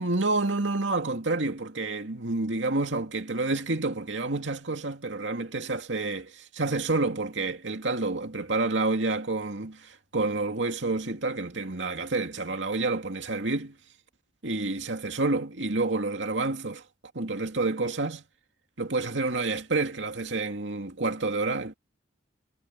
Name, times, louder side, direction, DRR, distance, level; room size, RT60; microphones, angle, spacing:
voice 1, 0.0-13.7 14.4-16.8 17.1-18.2 18.8-21.7, right 3 dB, 80° right, 2.5 m, -29 dB
head